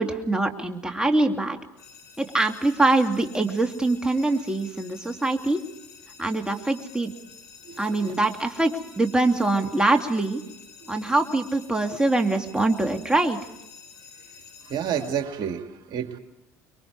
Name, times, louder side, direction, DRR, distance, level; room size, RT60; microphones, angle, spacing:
voice 1, 0.0-1.6 2.2-5.6 6.2-7.1 7.8-10.4 10.9-13.4, right 2 dB, 10° right, 4 dB, 2.5 m, -23 dB
sound 1, 1.8-15.2, left 6 dB, 80° left, 2.7 m, -49 dB
voice 2, 7.6-8.2 10.8-10.9 14.6-16.2, right 8 dB, 60° right, 5 dB, 2.2 m, -30 dB
25.5 x 23.0 x 4.8 m, 0.91 s
hypercardioid pair, 70°, 9 cm